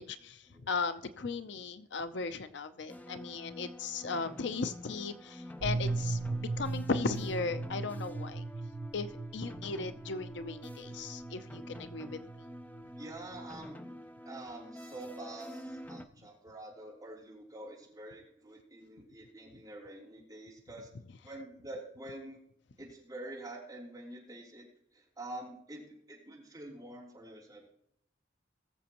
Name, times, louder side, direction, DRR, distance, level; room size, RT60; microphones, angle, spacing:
voice 1, 0.0-8.4 8.9-12.2, left 4 dB, 65° left, 0.6 m, -37 dB
sound 1, 2.9-16.0, equal, 10° left, 0.5 m, -48 dB
sound 2, 5.6-13.6, right 3 dB, 60° right, 0.5 m, -38 dB
voice 2, 13.0-13.8 14.2-20.9 21.2-22.4 22.8-24.7 24.9-25.8 26.1-27.7, right 1 dB, 20° right, 3.2 m, -47 dB
20.0 x 7.1 x 3.0 m
head